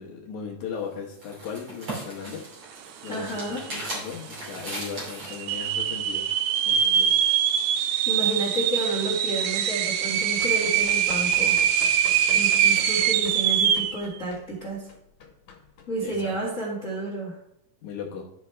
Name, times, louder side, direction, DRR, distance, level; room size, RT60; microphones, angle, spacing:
voice 1, 0.0-2.4 3.0-3.3 3.7-7.2 16.0-16.3 17.8-18.3, left 6 dB, 65° left, 0 dB, 2.4 m, -37 dB
sound 1, 0.7-5.5, right 1 dB, 40° right, 3.5 m, -37 dB
voice 2, 3.1-3.6 8.0-11.6 12.3-14.9 15.9-17.3, right 2 dB, 30° left, -5 dB, 1.5 m, -30 dB
sound 2, 3.1-3.2 3.4-4.0 4.5-4.6 5.3-14.0, right 9 dB, 80° right, 2.0 m, -23 dB
Run, 10.0-16.5, left 5 dB, 85° left, 2.8 m, -45 dB
13.0 x 5.0 x 3.3 m, 0.81 s
omnidirectional pair, 3.8 m